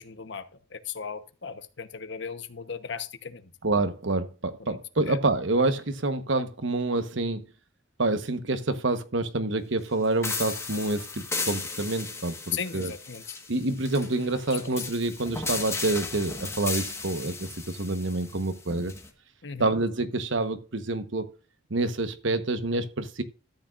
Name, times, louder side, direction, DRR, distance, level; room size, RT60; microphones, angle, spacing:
voice 1, 0.0-3.5 4.6-4.8 5.1-5.2 12.5-13.4 14.5-14.6 19.4-19.7, left 6 dB, 60° left, 1.0 m, -37 dB
voice 2, 3.6-7.4 8.0-11.1 11.5-12.9 13.5-18.9 19.6-21.3 21.7-23.2, right 2 dB, 65° right, 1.1 m, -27 dB
sound 1, 10.2-19.1, left 4 dB, 15° left, 1.4 m, -35 dB
13.5 x 8.8 x 2.5 m
head